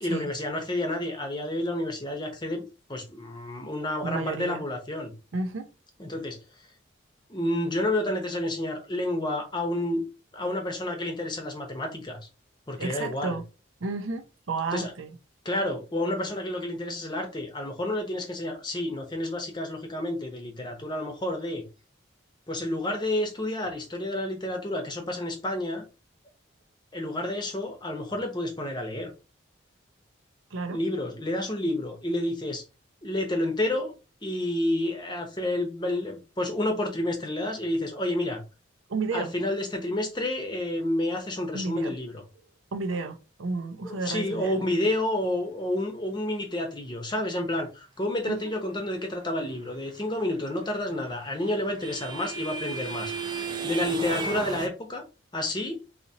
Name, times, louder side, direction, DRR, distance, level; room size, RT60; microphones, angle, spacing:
voice 1, 0.0-5.1 6.0-6.4 7.3-10.0 10.3-12.2 12.7-13.4 14.7-14.9 15.4-21.6 22.5-25.9 26.9-29.1 30.7-32.6 33.0-33.9 34.2-38.4 39.1-42.2 43.8-53.1 53.6-55.0 55.3-55.8, left 1 dB, 20° left, 0.8 m, -30 dB
voice 2, 4.0-4.6 5.3-5.7 12.8-13.5 13.8-15.1 30.5-30.8 38.9-39.3 41.5-42.0 42.7-44.7 48.3-48.4, right 3 dB, 80° right, 0.6 m, -32 dB
sound 1, 50.8-54.7, right 3 dB, 20° right, 0.5 m, -34 dB
4.1 x 2.8 x 2.8 m
head